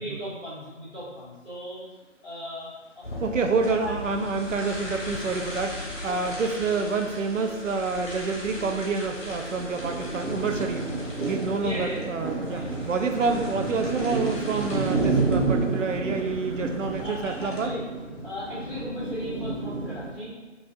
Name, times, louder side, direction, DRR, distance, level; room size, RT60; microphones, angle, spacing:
voice 1, 0.0-1.8 2.2-3.1 3.8-3.9 6.0-6.4 11.6-12.1 12.5-12.7 16.8-17.8 18.2-20.3, equal, 10° left, -19 dB, 1.0 m, -37 dB
sound 1, 3.0-17.7, left 1 dB, 55° left, 1.2 m, -39 dB
voice 2, 3.2-10.9 11.2-17.7, right 4 dB, 80° right, 4 dB, 0.5 m, -28 dB
sound 2, 9.5-20.1, right 3 dB, 20° right, 1.0 m, -30 dB
4.7 x 2.6 x 2.6 m, 1.2 s
figure-of-eight pair, 165°, 38 cm